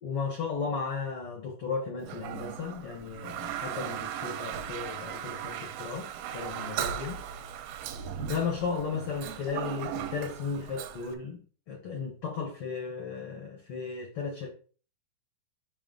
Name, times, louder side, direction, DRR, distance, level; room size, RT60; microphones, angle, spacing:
voice 1, 0.0-7.2 8.2-11.4 11.7-14.5, left 5 dB, 85° left, 2 dB, 1.2 m, -35 dB
Toilet flush, 2.0-11.2, right 9 dB, 80° right, 2.5 m, -37 dB
5.9 x 5.5 x 3.8 m, 0.40 s
omnidirectional pair, 4.3 m